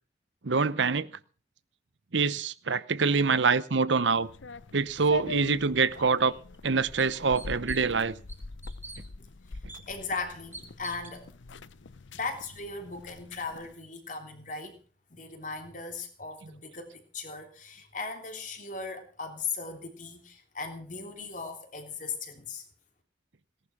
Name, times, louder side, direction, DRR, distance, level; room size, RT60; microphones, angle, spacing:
voice 1, 0.4-1.1 2.1-4.3 4.7-6.3 6.6-8.1, right 5 dB, 75° right, 0.9 m, -25 dB
sound 1, 4.1-13.7, left 4 dB, 80° left, 0.8 m, -43 dB
sound 2, 5.9-6.0 6.5-6.6 7.0-8.0 8.3-9.0 9.7-9.8 10.5-11.2, right 2 dB, 10° right, 3.4 m, -45 dB
voice 2, 9.9-11.3 12.1-14.8 15.1-22.6, left 4 dB, 40° left, 3.2 m, -38 dB
18.5 x 11.0 x 6.1 m
head